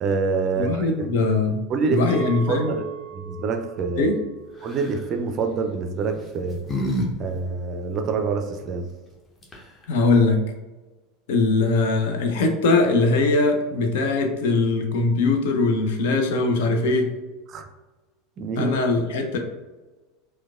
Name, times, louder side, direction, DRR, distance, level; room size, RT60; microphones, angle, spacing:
voice 1, 0.0-1.1 1.7-2.0 2.5-2.8 3.1-4.1 4.6-6.6 7.2-8.8 17.5-17.7 18.4-18.7, right 4 dB, 35° right, 5 dB, 0.4 m, -26 dB
voice 2, 0.5-1.6 1.9-2.8 4.0-4.2 9.9-10.4 11.3-17.1 18.6-19.4, left 3 dB, 60° left, 4 dB, 0.5 m, -21 dB
Chink clink, 2.1-7.2, right 5 dB, 90° left, 0.9 m, -40 dB
sound 1, 4.6-5.0 6.0-7.1 7.4-7.5 9.1-9.2 9.4-9.9, equal, 20° left, 0.8 m, -29 dB
4.5 x 2.1 x 2.4 m, 1.2 s
figure-of-eight pair, 75°, 0 cm